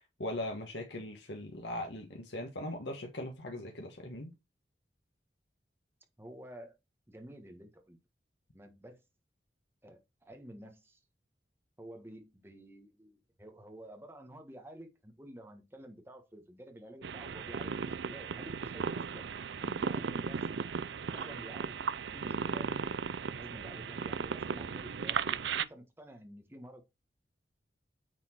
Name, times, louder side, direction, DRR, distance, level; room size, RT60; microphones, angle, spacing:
voice 1, 0.0-4.3, left 1 dB, 85° left, 1.4 m, -40 dB
voice 2, 6.2-6.7 7.1-8.0 8.5-9.0 9.8-11.0 11.8-19.3 19.6-20.4 21.1-21.7 22.1-22.7 23.3-26.8, right 1 dB, 15° right, 1.5 m, -50 dB
sound 1, 17.0-25.6, right 6 dB, 85° right, 0.5 m, -36 dB
9.1 x 4.3 x 4.5 m
head